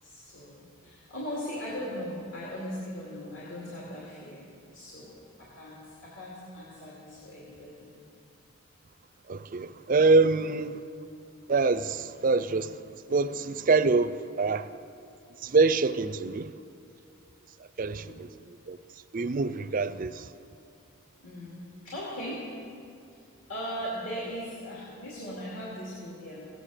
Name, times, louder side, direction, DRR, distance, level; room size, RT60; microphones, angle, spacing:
voice 1, 0.0-7.9 17.9-18.2 21.2-22.4 23.5-26.5, equal, 60° left, 2.7 m, -39 dB
voice 2, 9.3-10.8 11.5-12.7 13.1-14.7 15.4-16.5 17.8-18.3 18.7-18.8 19.1-20.2, right 3 dB, 40° right, 0.4 m, -25 dB
17.0 x 9.1 x 6.5 m
head